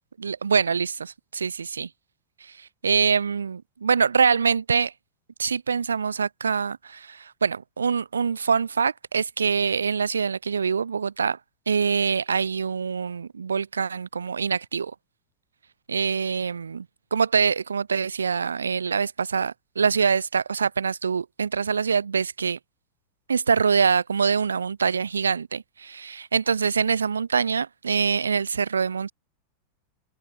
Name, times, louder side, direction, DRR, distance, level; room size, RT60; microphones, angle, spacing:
voice 1, 0.2-1.9 2.4-4.9 5.4-11.4 11.7-14.9 15.9-16.9 17.1-22.6 23.3-29.1, right 6 dB, 75° right, 0.3 m, -24 dB
open air
figure-of-eight pair, 90°, 0 cm